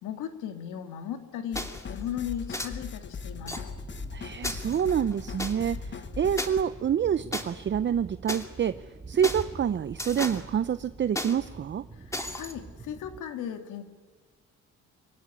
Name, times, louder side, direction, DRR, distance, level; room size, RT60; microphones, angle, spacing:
voice 1, 0.0-3.6 12.0-13.8, left 9 dB, 85° left, 7 dB, 2.3 m, -37 dB
sound 1, 1.5-6.6, left 5 dB, 40° left, 1.2 m, -39 dB
sound 2, 1.6-1.9 2.5-2.7 3.5-3.6 4.4-5.5 6.4-6.5 7.3-7.4 8.3-8.4 9.2-9.4 10.0-10.4 11.2-11.3 12.1-12.5, left 1 dB, 10° left, 2.7 m, -33 dB
sound 3, 3.2-13.2, right 3 dB, 25° right, 2.6 m, -45 dB
voice 2, 4.1-8.8 9.1-11.8, right 8 dB, 40° right, 14 dB, 0.6 m, -27 dB
25.5 x 16.5 x 10.0 m, 1.4 s
cardioid pair, 90°, 30 cm